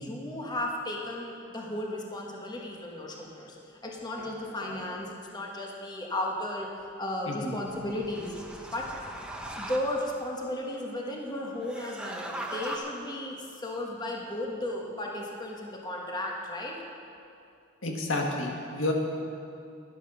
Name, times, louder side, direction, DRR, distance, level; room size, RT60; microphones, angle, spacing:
voice 1, 0.0-3.6 3.8-6.7 7.0-8.3 8.7-8.9 9.5-16.8, left 1 dB, 20° left, -1 dB, 1.3 m, -35 dB
sound 1, 4.2-4.8, right 1 dB, 50° right, 1.9 m, -44 dB
voice 2, 7.3-7.6 17.8-18.9, left 2 dB, 90° left, 0 dB, 1.7 m, -30 dB
sound 2, 7.6-10.2 11.6-12.8, right 1 dB, 5° right, 1.0 m, -40 dB
12.5 x 11.0 x 5.5 m, 2.5 s
head